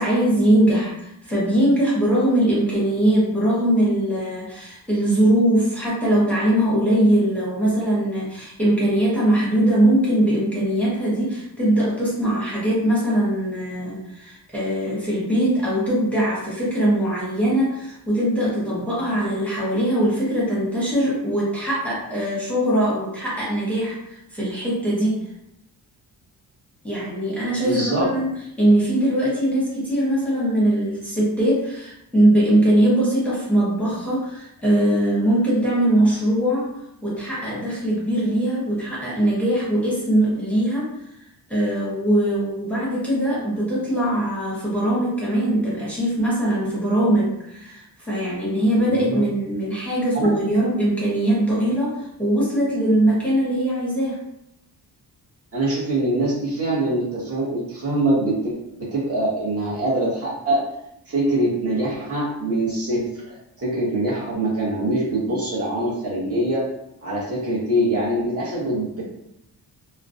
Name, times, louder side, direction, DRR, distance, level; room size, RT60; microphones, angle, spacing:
voice 1, 0.0-25.2 26.8-28.3 28.6-36.7 37.0-40.9 41.5-54.2, right 1 dB, 5° left, -8 dB, 0.8 m, -21 dB
voice 2, 27.6-28.0 48.8-49.2 50.1-50.3 55.5-60.6 61.1-66.7 67.0-69.0, right 1 dB, 35° right, -7 dB, 0.9 m, -24 dB
2.3 x 2.0 x 2.5 m, 0.80 s
cardioid pair, 100°, 40 cm